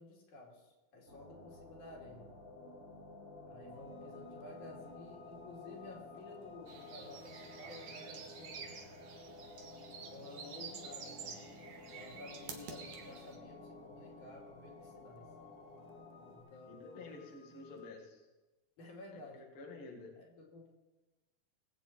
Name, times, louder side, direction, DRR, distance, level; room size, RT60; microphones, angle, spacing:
voice 1, 0.0-2.3 3.5-8.8 10.0-11.5 11.9-15.3 16.2-17.1 18.8-19.4 20.2-20.7, left 2 dB, 85° left, -2 dB, 4.0 m, -53 dB
sound 1, 1.1-16.4, left 2 dB, 45° right, 6.0 m, -53 dB
sound 2, 3.7-17.9, left 7 dB, 65° left, 1.8 m, -62 dB
sound 3, 6.7-13.4, right 6 dB, 75° right, 2.7 m, -49 dB
voice 2, 16.7-18.3 19.1-20.1, left 3 dB, 50° left, -1 dB, 2.5 m, -50 dB
22.0 x 8.2 x 4.2 m, 1.1 s
omnidirectional pair, 3.4 m